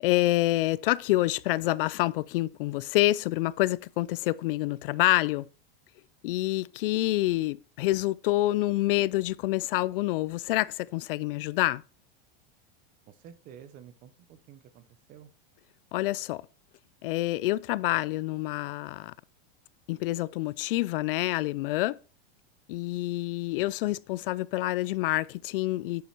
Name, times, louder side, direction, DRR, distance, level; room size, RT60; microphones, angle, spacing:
voice 1, 0.0-5.5 6.2-11.8 15.9-16.5 17.0-19.1 19.9-22.0 22.7-26.1, left 17 dB, 60° left, 0.4 m, -27 dB
voice 2, 13.1-15.3, right 9 dB, 30° right, 0.7 m, -51 dB
9.2 x 7.0 x 4.5 m
supercardioid pair, 160°, 31 cm